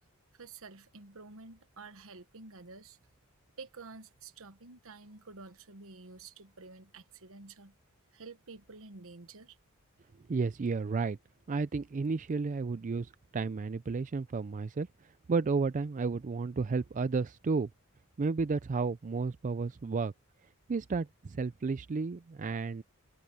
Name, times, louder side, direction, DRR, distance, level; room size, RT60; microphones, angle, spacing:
voice 1, 0.3-3.0 3.6-7.7 8.1-9.6, right 3 dB, 65° right, 1.2 m, -50 dB
voice 2, 10.3-11.2 11.5-14.9 15.3-17.7 18.2-20.1 20.7-22.8, right 4 dB, 35° right, 0.4 m, -32 dB
head